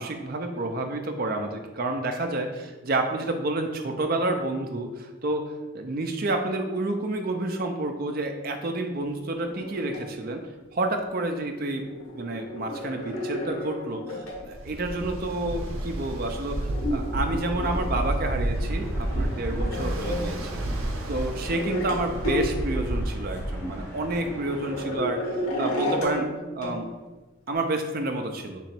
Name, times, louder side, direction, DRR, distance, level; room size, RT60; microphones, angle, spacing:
voice 1, 0.0-10.4 10.7-11.9 12.1-20.5 21.1-26.9 27.5-28.6, right 2 dB, 45° right, 4 dB, 0.5 m, -29 dB
sound 1, 9.4-10.0 11.7-14.4 15.0-20.3 20.6-20.7 21.4-22.0 22.2-22.5 23.3-23.4 23.6-26.3 26.6-26.7 27.5-27.6, equal, 90° left, 1.1 m, -33 dB
Ocean, 14.4-24.3, right 1 dB, 90° right, 0.6 m, -31 dB
sound 2, 18.5-25.0, equal, 15° left, 0.9 m, -43 dB
3.8 x 3.0 x 4.4 m, 1.2 s
head